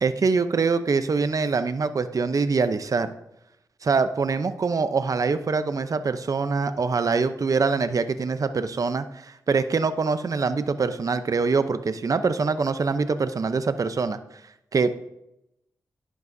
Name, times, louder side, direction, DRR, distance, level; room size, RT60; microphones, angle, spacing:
voice 1, 0.0-3.1 3.8-14.2 14.7-15.1, right 4 dB, 55° right, 11 dB, 0.7 m, -24 dB
11.0 x 10.5 x 2.7 m, 0.84 s
cardioid pair, 55°, 7 cm